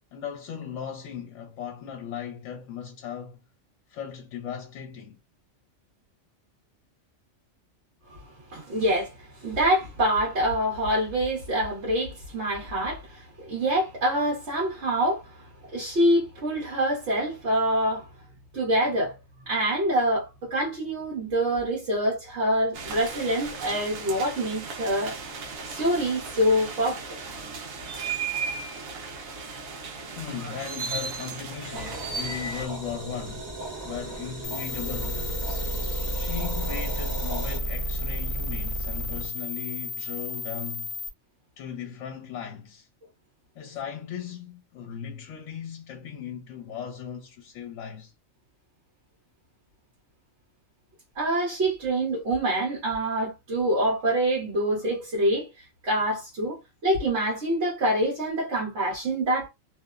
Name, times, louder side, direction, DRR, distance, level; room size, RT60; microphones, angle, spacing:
voice 1, 0.0-3.4 3.9-5.2 30.2-33.5 33.8-35.4 36.1-40.9 41.6-42.9 43.5-48.1, left 8 dB, 70° left, 1.0 m, -37 dB
voice 2, 8.5-18.1 18.5-19.2 19.5-25.2 25.7-27.2 30.4-30.5 51.2-59.5, right 1 dB, 60° right, 1.2 m, -26 dB
sound 1, 22.7-32.6, right 4 dB, 80° right, 1.1 m, -36 dB
sound 2, 31.7-37.6, right 1 dB, 35° right, 1.0 m, -37 dB
sound 3, 34.4-41.1, left 1 dB, 30° left, 0.8 m, -31 dB
2.8 x 2.0 x 2.3 m
omnidirectional pair, 1.4 m